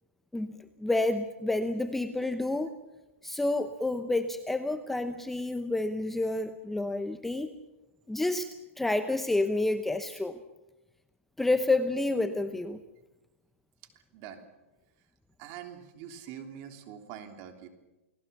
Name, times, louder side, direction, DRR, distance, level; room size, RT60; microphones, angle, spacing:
voice 1, 0.3-2.7 3.2-7.5 8.1-10.4 11.4-12.8, left 2 dB, 5° left, 9 dB, 0.9 m, -29 dB
voice 2, 14.1-14.4 15.4-17.7, right 9 dB, 35° right, 6 dB, 3.4 m, -44 dB
29.5 x 19.0 x 7.0 m, 1.0 s
hypercardioid pair, 145°, 7 cm